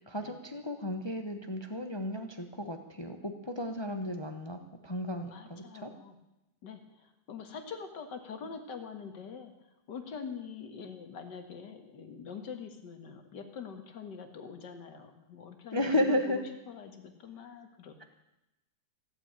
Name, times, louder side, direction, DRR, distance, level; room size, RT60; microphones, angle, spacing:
voice 1, 0.0-5.9 15.7-16.4, left 1 dB, 20° left, 6 dB, 0.7 m, -33 dB
voice 2, 5.3-6.2 6.6-9.5 9.9-18.0, left 6 dB, 75° left, 6 dB, 2.2 m, -44 dB
16.0 x 8.9 x 8.8 m, 0.93 s
omnidirectional pair, 1.9 m